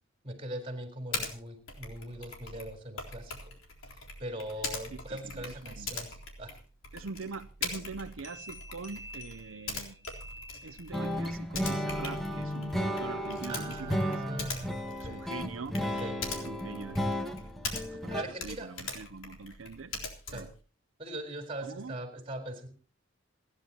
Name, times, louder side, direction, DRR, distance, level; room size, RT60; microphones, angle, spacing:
voice 1, 0.2-3.5 4.2-6.6 13.4-15.3 16.0-16.2 17.9-18.7 20.3-20.5 21.0-22.7, right 1 dB, 30° right, 4.2 m, -40 dB
Typing, 1.1-1.3 1.7-18.1 18.4-20.6, left 4 dB, 80° left, 3.8 m, -41 dB
voice 2, 5.1-6.1 6.9-10.1 10.6-14.4 14.7-15.8 16.3-17.2 17.8-19.9 20.3-20.5 21.6-22.0, right 4 dB, 80° right, 0.7 m, -44 dB
sound 1, 8.2-11.2, equal, 35° left, 5.4 m, -49 dB
sound 2, 10.9-18.2, equal, ahead, 1.6 m, -34 dB
28.5 x 10.5 x 2.9 m
head